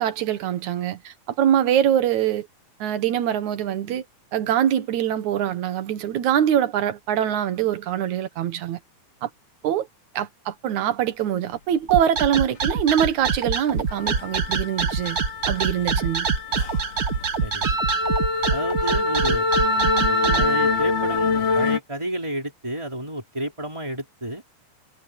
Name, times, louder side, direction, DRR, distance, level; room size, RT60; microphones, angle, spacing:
voice 1, 0.0-2.5 2.8-4.1 4.3-8.8 9.2-9.3 9.6-9.9 10.1-15.2 15.5-16.3, right 10 dB, 70° right, 2.7 m, -23 dB
sound 1, 11.9-20.5, right 5 dB, 40° right, 1.4 m, -24 dB
sound 2, 13.0-13.2 13.5-21.8, left 4 dB, 80° left, 4.5 m, -26 dB
voice 2, 17.4-17.8 18.5-19.5 20.1-24.4, right 1 dB, 10° right, 4.9 m, -31 dB
Wind instrument woodwind instrument, 17.6-20.9, equal, 25° right, 0.8 m, -26 dB
omnidirectional pair, 3.6 m